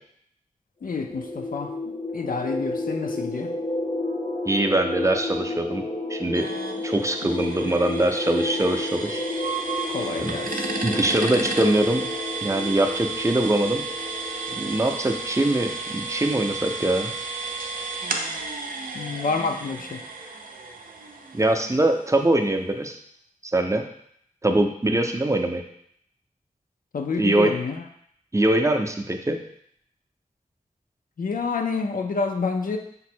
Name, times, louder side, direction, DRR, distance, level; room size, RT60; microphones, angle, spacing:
voice 1, 0.8-3.5 7.2-7.3 9.9-10.6 18.9-20.0 26.9-27.8 31.2-32.8, left 4 dB, 85° left, 4 dB, 0.4 m, -28 dB
sound 1, 0.8-15.2, left 2 dB, 35° left, 0.6 m, -32 dB
voice 2, 4.5-5.8 6.1-6.5 6.8-9.2 10.2-10.3 10.8-12.0 12.4-13.8 14.6-17.1 21.3-23.0 23.5-23.9 24.4-25.6 27.2-27.5 28.3-29.4, right 1 dB, 20° right, 4 dB, 0.4 m, -23 dB
sound 2, 6.3-22.0, right 3 dB, 85° right, 0.5 m, -33 dB
5.1 x 2.1 x 4.3 m, 0.68 s
wide cardioid pair, 75°, 14 cm